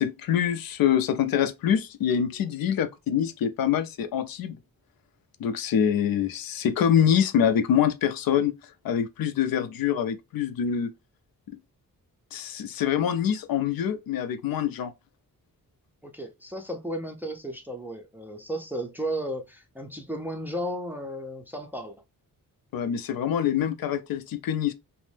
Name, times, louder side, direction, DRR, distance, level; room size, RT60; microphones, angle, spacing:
voice 1, 0.0-4.6 5.4-8.5 8.8-10.9 11.5-11.6 12.3-14.9 22.7-24.7, left 9 dB, 80° left, 0.5 m, -25 dB
voice 2, 16.0-22.0, right 1 dB, 5° right, 0.4 m, -34 dB
2.5 x 2.0 x 3.1 m
wide cardioid pair, 135°, 35 cm